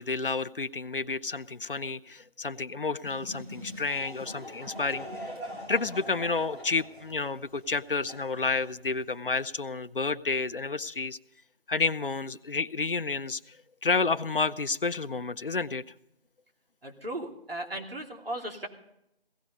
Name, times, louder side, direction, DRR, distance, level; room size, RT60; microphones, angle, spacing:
voice 1, 0.0-5.3 5.7-11.2 11.7-15.8, left 4 dB, 60° left, 13 dB, 0.7 m, -30 dB
sound 1, 3.0-5.7, left 1 dB, 40° right, 5.1 m, -46 dB
Laughter / Crowd, 3.5-9.2, equal, 90° right, 6.0 m, -44 dB
voice 2, 16.8-18.7, right 1 dB, 65° right, 2 dB, 3.0 m, -36 dB
17.5 x 14.0 x 5.3 m, 0.78 s
figure-of-eight pair, 170°, 31 cm